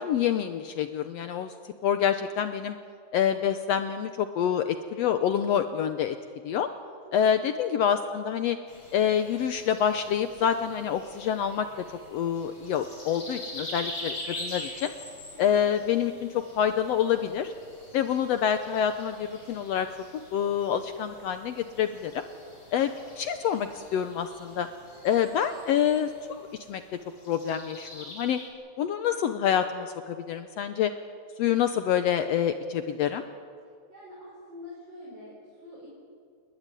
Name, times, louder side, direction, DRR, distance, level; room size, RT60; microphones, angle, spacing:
voice 1, 0.0-1.5 1.8-2.8 3.1-6.2 6.4-6.7 7.1-8.6 8.9-14.9 15.4-17.5 17.9-19.9 20.3-22.2 22.7-24.7 25.0-26.8 27.3-28.4 28.8-30.9 31.4-33.2, left 9 dB, 75° left, 9 dB, 1.6 m, -27 dB
voice 2, 7.0-7.5 24.9-25.2 33.9-35.9, left 1 dB, 35° right, -5 dB, 5.5 m, -46 dB
sound 1, 8.7-28.5, left 1 dB, 30° left, 4.4 m, -44 dB
29.5 x 12.5 x 10.0 m, 2.2 s
omnidirectional pair, 3.6 m